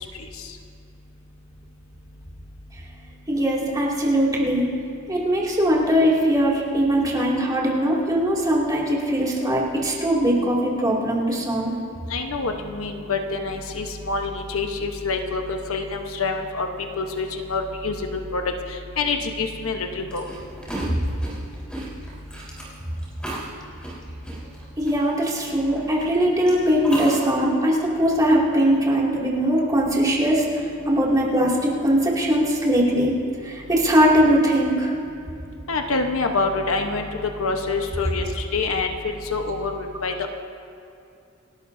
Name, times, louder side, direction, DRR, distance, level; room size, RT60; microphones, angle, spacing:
voice 1, 3.3-4.7 5.1-11.7 24.8-30.4 30.9-33.2 33.4-34.9, equal, 20° right, -5 dB, 2.6 m, -20 dB
voice 2, 12.1-16.7 17.0-18.4 19.0-20.2 35.7-40.3, left 3 dB, 75° left, 4 dB, 1.1 m, -26 dB
sound 1, 20.1-26.0 26.5-27.2, right 1 dB, 5° left, 4.1 m, -35 dB
28.5 x 13.0 x 2.7 m, 2.6 s
head